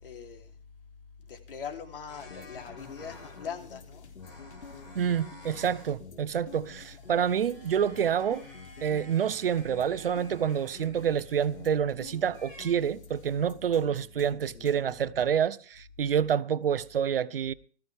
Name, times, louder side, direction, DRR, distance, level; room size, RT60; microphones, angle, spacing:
voice 1, 0.0-0.5 1.3-4.1, left 7 dB, 55° left, 3.4 m, -41 dB
sound 1, 2.1-3.6 4.2-6.0 6.3-11.8 12.3-12.7, left 1 dB, 20° left, 6.3 m, -52 dB
sound 2, 2.2-15.1, left 5 dB, 80° left, 4.3 m, -50 dB
voice 2, 4.9-8.5 8.8-17.5, right 8 dB, 55° right, 0.8 m, -28 dB
19.5 x 14.5 x 3.5 m
hypercardioid pair, 170°, 33 cm